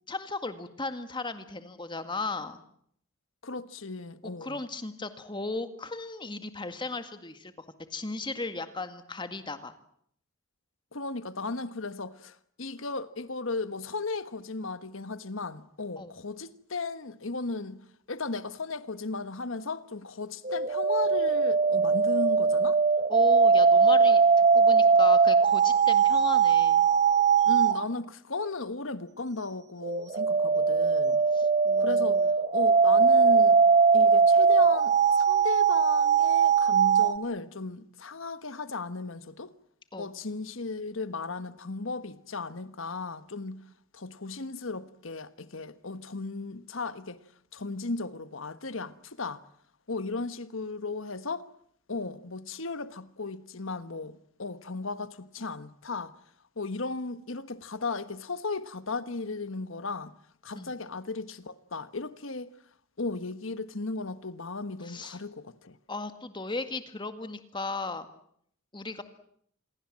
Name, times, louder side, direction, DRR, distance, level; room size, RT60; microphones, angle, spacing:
voice 1, 0.1-2.6 4.2-7.5 7.9-9.7 16.0-16.1 23.1-26.9 31.3-32.3 39.9-40.1 60.5-60.8 64.8-65.2 65.9-68.1 68.7-69.0, left 3 dB, 20° left, 2.0 m, -36 dB
voice 2, 3.4-4.6 10.9-17.8 18.1-22.8 27.4-31.2 31.8-32.2 32.5-33.6 33.9-39.5 40.0-43.6 43.9-47.2 47.5-49.4 49.9-51.4 51.9-56.1 56.6-60.1 60.4-62.5 63.0-65.8, left 3 dB, 65° left, 1.4 m, -36 dB
sound 1, 20.4-27.8 29.8-37.1, right 5 dB, 35° right, 1.0 m, -21 dB
27.0 x 22.5 x 7.6 m
head